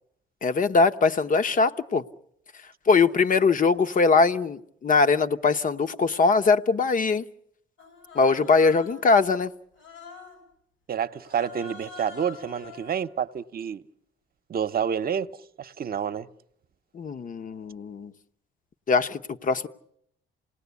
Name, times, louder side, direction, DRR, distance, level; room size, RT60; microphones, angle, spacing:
voice 1, 0.4-2.0 2.9-7.2 8.1-9.5 16.9-18.1 18.9-19.7, left 4 dB, 40° left, 1.0 m, -21 dB
Human voice, 7.8-9.1 9.8-10.4 11.2-13.0, left 5 dB, 80° left, 6.2 m, -44 dB
voice 2, 10.9-13.8 14.5-15.3 15.6-16.3, right 8 dB, 50° right, 0.9 m, -28 dB
28.0 x 19.0 x 8.4 m
cardioid pair, 90°, 20 cm